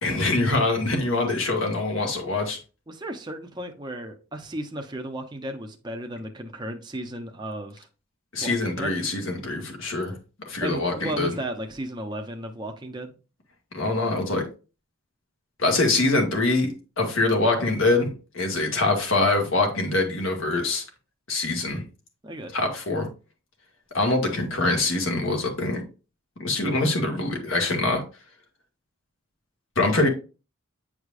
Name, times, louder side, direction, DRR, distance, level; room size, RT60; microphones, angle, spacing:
voice 1, 0.0-2.6 8.3-10.1 10.5-11.3 13.7-14.4 15.6-20.8 21.3-21.8 22.5-23.1 23.9-25.8 26.4-28.0 29.8-30.1, left 2 dB, 65° left, 1.9 m, -24 dB
voice 2, 2.9-7.9 8.4-8.9 10.6-13.1 22.2-22.7, right 1 dB, 20° right, 0.7 m, -34 dB
9.2 x 4.8 x 2.5 m
head